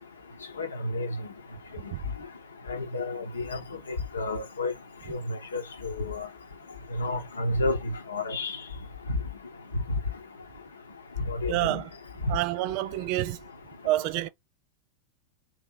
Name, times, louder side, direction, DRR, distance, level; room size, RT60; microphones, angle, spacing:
voice 1, 0.6-1.1 2.7-3.6 4.1-4.7 5.1-6.3 7.0-7.8 8.1-8.5 11.3-11.8, left 2 dB, 80° left, 0.9 m, -30 dB
voice 2, 11.5-11.9 12.3-13.4 13.8-14.3, right 16 dB, 50° right, 0.3 m, -28 dB
3.1 x 3.0 x 3.7 m
figure-of-eight pair, 90°, 0 cm